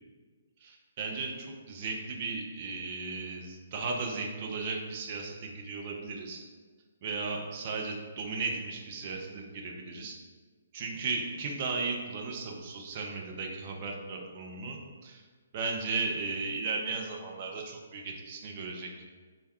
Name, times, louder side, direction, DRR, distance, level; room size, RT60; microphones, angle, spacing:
voice 1, 0.6-6.4 7.0-10.2 10.7-15.2 15.5-18.9, right 4 dB, 35° right, 1 dB, 0.5 m, -36 dB
3.4 x 2.3 x 4.1 m, 1.5 s
figure-of-eight pair, 130°, 0 cm